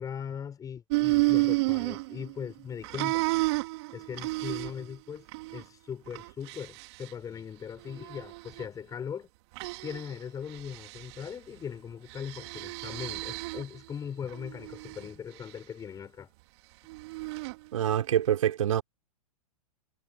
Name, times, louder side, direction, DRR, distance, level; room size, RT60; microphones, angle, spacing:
voice 1, 0.0-3.2 3.9-5.3 5.5-9.3 9.8-16.3, left 7 dB, 20° left, 5.8 m, -39 dB
sound 1, 0.9-2.5 2.8-4.9 5.3-5.6 6.1-7.1 7.8-8.6 9.6-10.1 10.5-11.3 12.1-13.8 14.3-15.1 16.9-17.6, right 23 dB, 45° right, 2.7 m, -31 dB
voice 2, 17.7-18.8, right 10 dB, 60° right, 5.4 m, -25 dB
figure-of-eight pair, 110°, 19 cm